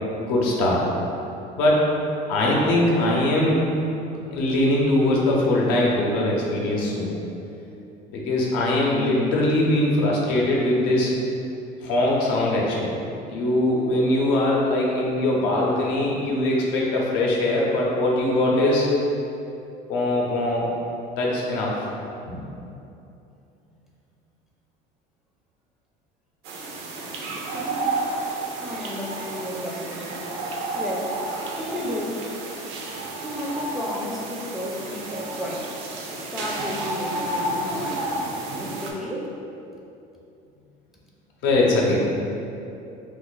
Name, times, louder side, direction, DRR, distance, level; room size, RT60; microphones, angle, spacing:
voice 1, 0.2-0.8 1.5-1.8 2.3-3.6 4.3-7.1 8.1-11.1 11.8-12.9 13.3-18.9 19.9-20.7 21.2-21.9 41.4-42.0, left 1 dB, 85° left, -3 dB, 0.7 m, -21 dB
sound 1, 26.4-38.9, right 2 dB, 80° right, 0.5 m, -31 dB
voice 2, 27.5-28.0 28.6-30.3 30.7-31.2 31.5-32.5 33.2-35.8 36.2-38.1 38.6-39.3, equal, ahead, -4 dB, 0.4 m, -33 dB
2.4 x 2.4 x 3.9 m, 2.7 s
cardioid pair, 120°, 18 cm